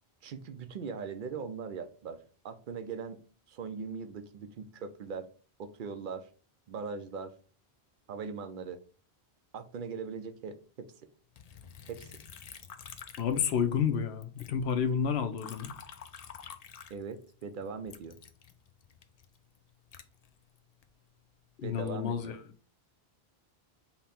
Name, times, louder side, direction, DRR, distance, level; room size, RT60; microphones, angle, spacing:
voice 1, 0.2-3.2 3.5-5.3 5.6-6.3 6.7-7.3 8.1-8.8 9.5-10.9 11.9-12.1 16.9-18.2 21.6-22.4, right 5 dB, 60° right, 0.7 m, -40 dB
Liquid, 11.4-13.9 14.2-17.4 17.9-20.9 21.4-22.0, left 7 dB, 50° left, 0.5 m, -49 dB
voice 2, 13.2-15.7 21.6-22.4, left 7 dB, 80° left, 0.9 m, -30 dB
5.5 x 2.2 x 4.2 m
omnidirectional pair, 1.1 m